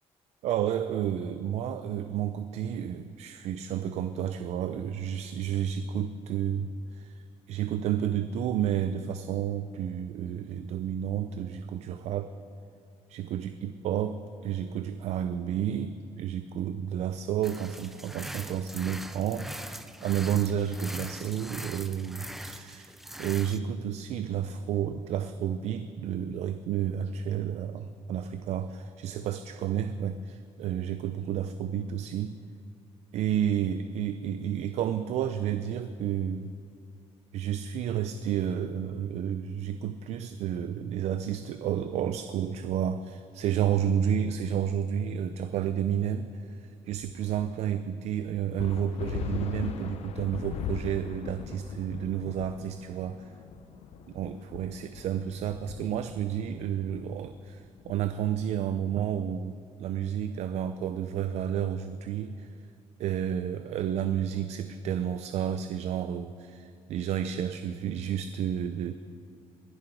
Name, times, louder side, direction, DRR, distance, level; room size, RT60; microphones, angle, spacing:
voice 1, 0.4-12.3 13.1-19.5 20.0-22.9 23.2-32.4 33.1-36.5 37.3-53.3 54.1-62.5 63.0-68.9, right 9 dB, 70° right, 10 dB, 0.4 m, -31 dB
sound 1, 17.4-23.6, right 1 dB, ahead, 0.3 m, -42 dB
sound 2, 48.6-58.5, left 7 dB, 60° left, 0.7 m, -39 dB
22.0 x 7.7 x 4.6 m, 2.4 s
cardioid pair, 180°, 12 cm